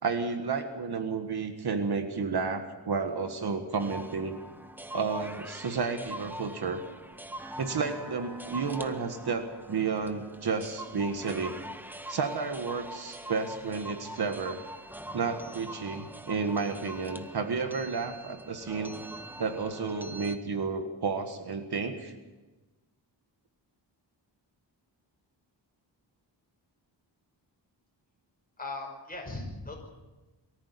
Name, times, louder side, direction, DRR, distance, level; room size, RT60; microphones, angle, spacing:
voice 1, 0.0-4.4 4.9-6.8 7.6-11.6 12.1-14.6 15.1-18.9 19.4-22.1, right 5 dB, 55° right, 6 dB, 1.8 m, -31 dB
sound 1, 3.8-20.4, right 1 dB, 5° right, 0.8 m, -44 dB
voice 2, 28.6-29.8, left 2 dB, 20° left, 1 dB, 5.6 m, -38 dB
23.0 x 14.0 x 8.5 m, 1.2 s
wide cardioid pair, 145°, 44 cm